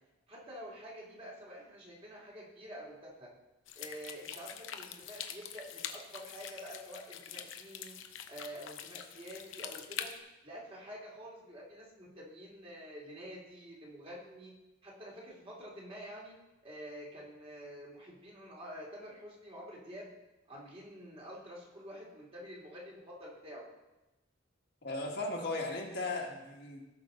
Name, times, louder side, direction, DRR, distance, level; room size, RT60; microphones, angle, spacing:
voice 1, 0.3-3.3 3.7-7.9 8.3-10.1 10.4-14.5 14.8-16.4 16.6-20.1 20.5-23.7, equal, 30° right, -4 dB, 2.5 m, -48 dB
sound 1, 3.7-10.2, left 8 dB, 80° left, 0.8 m, -45 dB
voice 2, 24.8-26.8, left 2 dB, 55° left, -1 dB, 1.7 m, -36 dB
17.5 x 5.8 x 3.8 m, 1.0 s
head